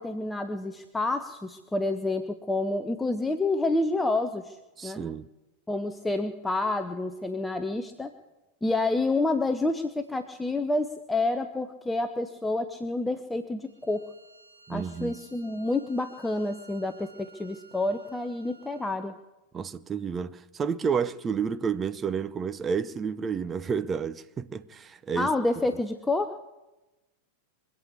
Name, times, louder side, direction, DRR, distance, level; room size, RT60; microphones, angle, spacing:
voice 1, 0.0-4.6 4.8-5.0 5.7-8.1 8.6-14.1 14.7-19.1 25.2-26.4, left 2 dB, 10° left, 0.8 m, -28 dB
voice 2, 4.8-5.3 14.7-15.1 19.5-25.3, right 6 dB, 20° right, 0.7 m, -30 dB
Bowed string instrument, 13.7-19.0, right 3 dB, 65° right, 6.0 m, -55 dB
24.0 x 8.4 x 7.1 m
figure-of-eight pair, 90°, 0 cm